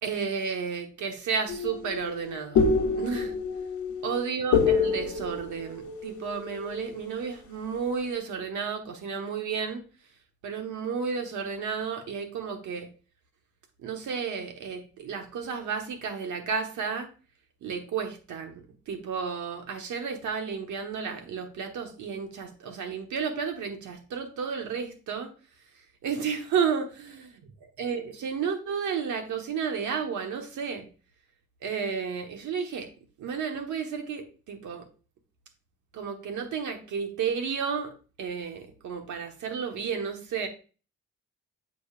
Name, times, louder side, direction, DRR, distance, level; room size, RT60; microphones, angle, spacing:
voice 1, 0.0-2.7 3.0-3.3 4.0-9.8 10.4-12.9 13.8-17.1 17.6-25.3 26.0-27.2 27.8-30.9 31.6-32.9 33.2-34.8 35.9-37.9 38.2-40.5, right 6 dB, 85° right, 4 dB, 1.3 m, -32 dB
sound 1, 1.5-7.1, left 5 dB, 90° left, 0.9 m, -27 dB
8.0 x 5.3 x 2.4 m, 0.36 s
cardioid pair, 85°, 29 cm